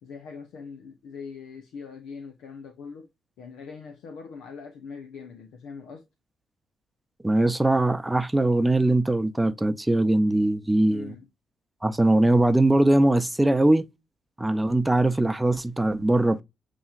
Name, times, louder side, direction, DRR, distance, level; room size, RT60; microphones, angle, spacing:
voice 1, 0.0-3.1 3.4-6.1 10.9-11.3, left 5 dB, 85° left, 0.7 m, -42 dB
voice 2, 7.2-11.1 11.8-13.8 14.4-16.4, right 1 dB, 10° right, 0.6 m, -21 dB
7.1 x 3.0 x 2.3 m
cardioid pair, 95°, 0 cm